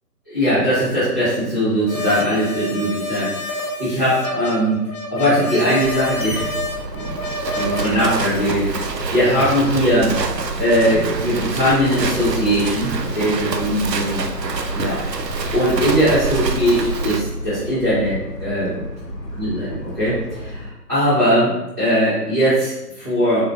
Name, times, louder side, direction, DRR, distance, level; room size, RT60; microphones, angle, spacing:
voice 1, 0.3-4.8 5.1-6.5 6.9-10.1 10.6-18.7 19.4-23.4, equal, 10° right, -19 dB, 0.7 m, -20 dB
sound 1, 1.9-8.2, equal, 50° left, 0.8 m, -28 dB
Livestock farm animals working animals, 5.8-17.2, right 4 dB, 85° right, 0.6 m, -27 dB
Motor vehicle (road) / Siren, 6.2-20.7, equal, 85° left, 0.9 m, -32 dB
3.7 x 2.9 x 2.4 m, 0.95 s
figure-of-eight pair, 145°, 49 cm